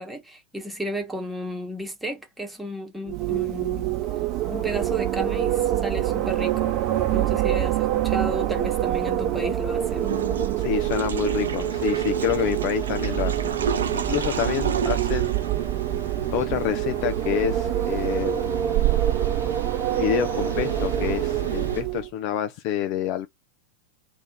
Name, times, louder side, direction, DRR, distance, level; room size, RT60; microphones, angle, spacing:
voice 1, 0.0-4.1 4.5-6.8 7.1-10.2, equal, 5° right, 1.2 m, -33 dB
Wind, 3.1-22.1, right 13 dB, 40° right, 0.8 m, -25 dB
Water / Toilet flush, 10.0-16.2, right 5 dB, 65° right, 0.5 m, -32 dB
voice 2, 10.6-15.3 16.3-18.8 19.9-23.3, left 11 dB, 45° left, 0.4 m, -28 dB
sound 1, 11.3-21.8, right 1 dB, 85° right, 1.2 m, -38 dB
2.9 x 2.5 x 3.6 m
figure-of-eight pair, 90°, 0 cm